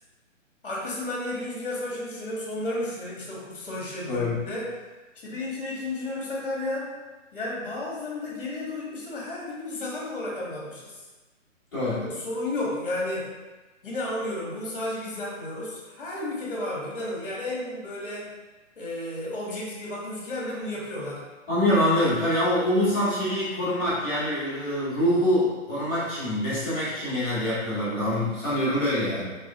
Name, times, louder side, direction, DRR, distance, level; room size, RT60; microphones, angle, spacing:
voice 1, 0.6-4.7 5.1-6.9 7.3-11.0 12.0-13.3 13.8-18.3 18.8-21.3, left 1 dB, 45° left, -3 dB, 1.0 m, -32 dB
voice 2, 4.1-4.4 11.7-12.0 21.5-29.3, left 1 dB, 5° left, -17 dB, 0.9 m, -25 dB
3.5 x 2.3 x 2.7 m, 1.2 s
hypercardioid pair, 170°, 39 cm